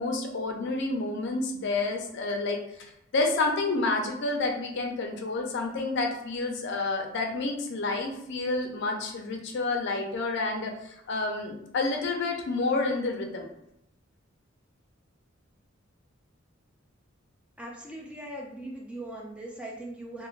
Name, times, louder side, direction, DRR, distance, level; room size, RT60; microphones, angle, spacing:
voice 1, 0.0-2.6 3.1-13.5, left 3 dB, 60° left, 2 dB, 0.4 m, -29 dB
voice 2, 17.6-20.3, right 1 dB, 5° right, -2 dB, 0.4 m, -40 dB
2.4 x 2.1 x 3.1 m, 0.80 s
head